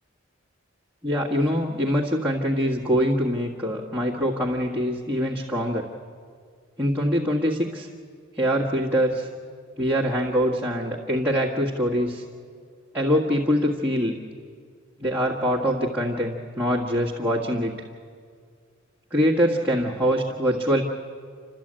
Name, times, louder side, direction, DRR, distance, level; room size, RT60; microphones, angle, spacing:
voice 1, 1.0-5.9 6.8-7.9 8.3-9.3 9.8-12.2 12.9-14.2 15.0-17.8 19.1-20.8, equal, 10° right, -5 dB, 1.7 m, -24 dB
28.5 x 14.0 x 8.8 m, 2.1 s
head